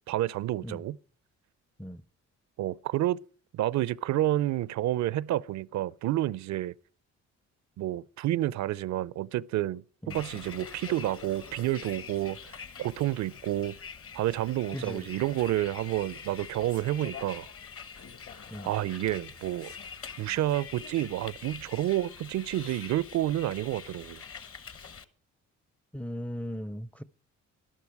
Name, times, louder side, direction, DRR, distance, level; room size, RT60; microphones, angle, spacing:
voice 1, 0.1-1.0 2.6-3.2 3.5-6.7 7.8-13.8 14.1-17.5 18.6-19.7 20.2-24.2, right 14 dB, 70° right, 0.5 m, -29 dB
Bus, 10.1-25.0, left 6 dB, 45° left, 1.1 m, -45 dB
voice 2, 25.9-27.0, equal, 5° left, 0.5 m, -37 dB
12.0 x 11.5 x 4.7 m
cardioid pair, 90°, 30 cm